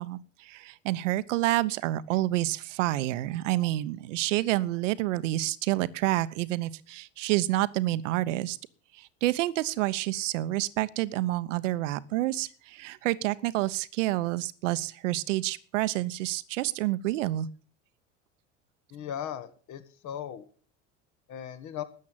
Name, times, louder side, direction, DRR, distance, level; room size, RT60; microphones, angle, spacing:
voice 1, 0.0-8.6 8.9-17.5, right 16 dB, 80° right, 1.0 m, -28 dB
voice 2, 18.9-20.4 21.3-21.8, left 9 dB, 50° left, 2.1 m, -37 dB
13.0 x 8.5 x 7.4 m
hypercardioid pair, 85°, 36 cm